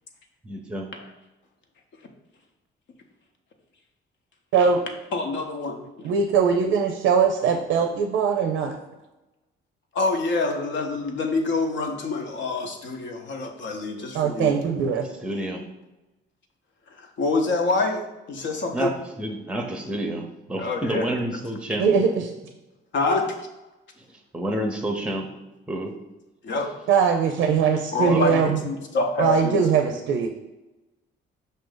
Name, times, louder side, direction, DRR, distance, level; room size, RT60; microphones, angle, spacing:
voice 1, 0.4-0.9 15.2-15.6 18.7-21.9 24.0-25.3 25.7-26.0 28.0-28.6, right 1 dB, 5° right, 4 dB, 0.6 m, -29 dB
voice 2, 5.1-5.8 9.9-14.5 17.2-18.0 18.3-18.9 20.6-21.1 22.9-23.3 26.4-26.7 27.9-29.6, left 3 dB, 65° left, 3 dB, 0.7 m, -26 dB
voice 3, 6.0-8.8 14.1-15.1 21.8-22.2 26.9-28.6 29.2-30.3, right 6 dB, 85° right, 4 dB, 0.5 m, -21 dB
5.2 x 2.6 x 3.8 m, 1.1 s
cardioid pair, 90°, 20 cm